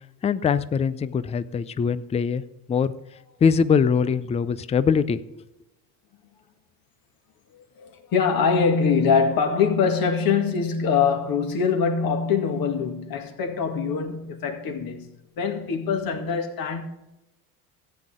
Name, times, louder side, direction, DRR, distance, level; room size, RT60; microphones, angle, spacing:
voice 1, 0.2-2.4 2.7-2.9 3.4-5.2, left 6 dB, 15° left, 0.4 m, -22 dB
voice 2, 7.5-16.8, left 6 dB, 45° left, 2.2 m, -23 dB
14.5 x 8.9 x 3.7 m
hypercardioid pair, 85°, 47 cm